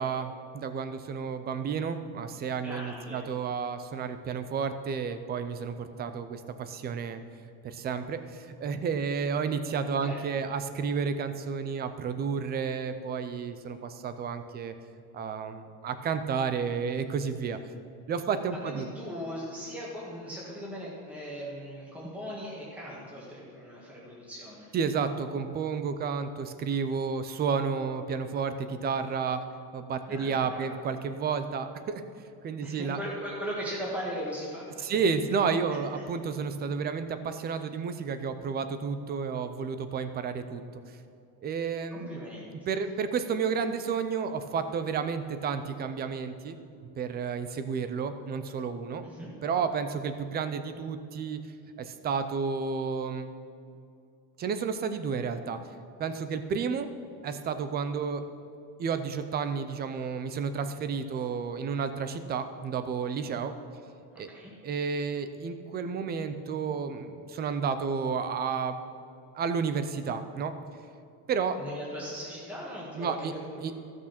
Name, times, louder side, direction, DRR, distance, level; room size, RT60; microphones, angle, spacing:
voice 1, 0.0-7.2 7.6-14.7 15.1-17.6 18.1-18.9 24.7-29.4 29.7-32.0 32.4-33.0 34.8-40.6 41.4-42.2 42.7-46.6 47.0-49.0 49.4-51.4 51.8-53.3 54.4-55.6 56.0-56.9 57.2-58.2 58.8-63.5 64.2-64.3 64.6-68.8 69.3-70.5 71.3-71.6 72.9-73.3 73.6-73.7, right 6 dB, 25° right, 10 dB, 0.4 m, -31 dB
voice 2, 2.6-3.2 10.0-10.2 18.6-24.7 30.1-30.7 32.6-35.0 35.7-36.0 41.9-42.5 49.0-49.3 64.3-64.5 71.6-73.7, equal, 5° right, -7 dB, 1.7 m, -39 dB
15.0 x 6.2 x 5.8 m, 2.6 s
cardioid pair, 170°, 43 cm